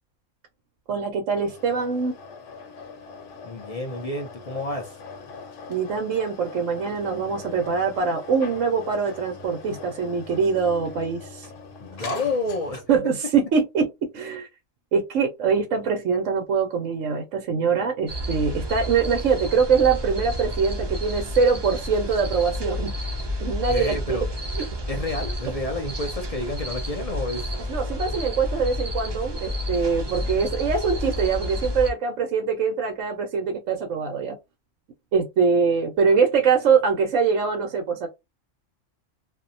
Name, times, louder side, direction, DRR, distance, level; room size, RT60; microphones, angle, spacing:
voice 1, 0.9-2.1 5.7-11.5 12.0-12.1 12.9-13.9 14.1-14.5 14.9-22.9 23.4-24.2 24.6-24.7 27.7-34.4 35.1-38.1, right 5 dB, 75° right, 1.1 m, -23 dB
sound 1, 1.3-13.0, left 4 dB, 70° left, 1.1 m, -41 dB
voice 2, 3.4-4.9 11.8-12.8 23.7-24.3 24.9-27.5, left 2 dB, 50° left, 0.4 m, -29 dB
sound 2, 18.1-31.9, left 1 dB, 45° right, 0.3 m, -30 dB
2.7 x 2.1 x 2.5 m
omnidirectional pair, 1.3 m